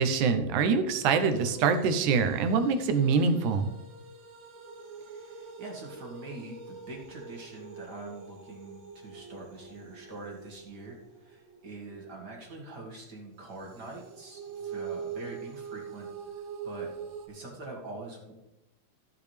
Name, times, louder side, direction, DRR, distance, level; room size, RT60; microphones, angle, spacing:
voice 1, 0.0-3.7, right 5 dB, 85° right, 8 dB, 2.3 m, -25 dB
sound 1, 1.3-12.8 13.5-17.3, right 6 dB, 60° right, 1.2 m, -44 dB
voice 2, 5.0-16.9 17.3-18.3, right 2 dB, 40° right, -1 dB, 2.1 m, -44 dB
14.0 x 6.9 x 3.4 m, 0.92 s
omnidirectional pair, 3.4 m